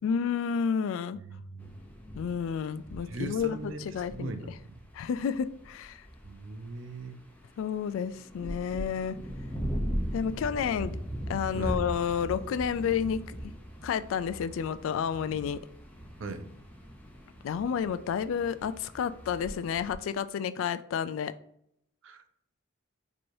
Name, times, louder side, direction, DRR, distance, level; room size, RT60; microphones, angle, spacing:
voice 1, 0.0-1.2 2.2-4.3 4.9-6.0 7.6-9.2 10.1-10.9 11.3-13.2 13.8-15.6 17.4-21.3, left 7 dB, 80° left, 14 dB, 0.3 m, -30 dB
voice 2, 1.2-1.7 3.1-3.8 4.1-4.8 6.2-7.2 11.5-11.8 16.2-16.4 22.0-22.2, right 3 dB, 70° right, 8 dB, 0.5 m, -39 dB
sound 1, 1.6-19.9, equal, 10° left, 0.5 m, -40 dB
4.6 x 3.0 x 2.6 m, 0.71 s
head